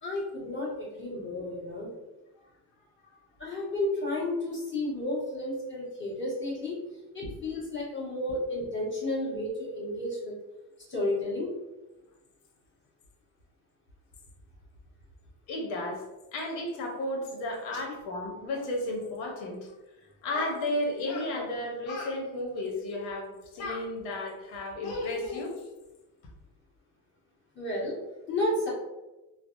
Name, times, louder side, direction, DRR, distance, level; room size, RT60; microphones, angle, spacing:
voice 1, 0.0-1.9 3.4-6.8 7.1-10.3 10.9-11.5 17.9-18.0 27.5-28.0 28.3-28.7, left 1 dB, 25° left, -6 dB, 1.4 m, -32 dB
voice 2, 15.5-16.0 16.3-19.8 20.2-25.7, left 1 dB, 85° left, 0 dB, 0.8 m, -33 dB
3.2 x 2.0 x 2.5 m, 1.1 s
supercardioid pair, 90°, 45 cm